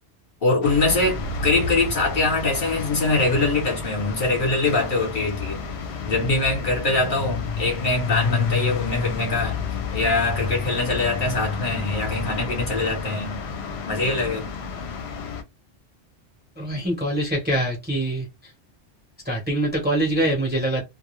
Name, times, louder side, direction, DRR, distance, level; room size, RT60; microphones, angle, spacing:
voice 1, 0.4-5.6 6.0-9.6 9.9-13.4 13.8-14.5, left 2 dB, 50° left, 1.0 m, -23 dB
sound 1, 0.6-15.4, left 5 dB, 75° left, 0.8 m, -30 dB
voice 2, 16.6-18.2 19.3-20.8, right 1 dB, 10° right, 0.7 m, -24 dB
2.3 x 2.2 x 3.0 m
omnidirectional pair, 1.2 m